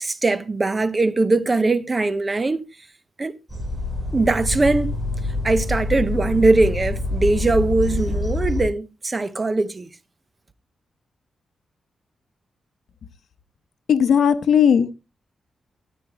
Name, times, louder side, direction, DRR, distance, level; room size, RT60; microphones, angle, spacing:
voice 1, 0.0-2.6 3.2-3.3 4.1-4.9 5.4-9.9, right 2 dB, 25° right, 0.9 m, -21 dB
sound 1, 3.5-8.6, left 2 dB, 5° right, 3.9 m, -26 dB
voice 2, 13.9-14.9, left 7 dB, 80° left, 0.9 m, -16 dB
13.5 x 9.2 x 2.9 m
wide cardioid pair, 120°, 0 cm